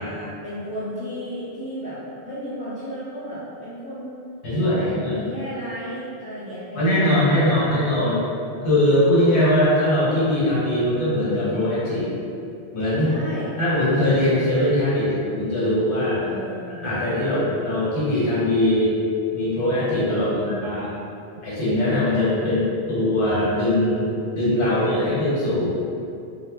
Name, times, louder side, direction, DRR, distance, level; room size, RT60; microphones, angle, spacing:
voice 1, 0.0-2.0 2.2-4.2 4.5-7.5 7.9-8.2 13.0-13.6 16.2-16.8 17.2-17.6 20.1-20.7, equal, 10° right, -11 dB, 0.4 m, -34 dB
voice 2, 4.4-5.2 6.7-8.2 8.6-12.1 12.7-13.1 13.6-16.2 16.8-19.0 19.3-20.9 21.4-25.8, left 1 dB, 80° left, -9 dB, 1.1 m, -21 dB
2.1 x 2.0 x 3.4 m, 2.6 s
omnidirectional pair, 1.1 m